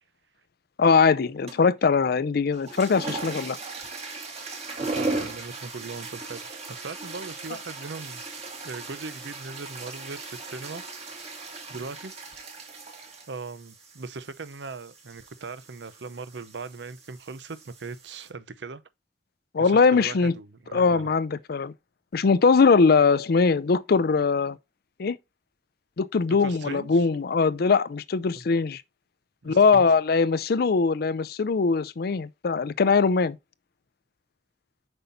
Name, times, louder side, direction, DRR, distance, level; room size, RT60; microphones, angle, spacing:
voice 1, 0.8-3.6 19.5-20.3 20.7-21.7 22.1-24.6 25.0-25.2 26.0-28.8 29.4-33.4, left 4 dB, 60° left, 0.5 m, -21 dB
sound 1, 1.5-1.8 2.5-18.3, right 3 dB, 40° right, 2.0 m, -38 dB
voice 2, 4.9-8.2 8.6-10.8 11.7-12.1 13.3-18.8 19.6-21.1 26.4-27.1 28.3-28.4 29.4-29.9, right 4 dB, 80° right, 0.7 m, -39 dB
7.9 x 5.6 x 2.6 m
head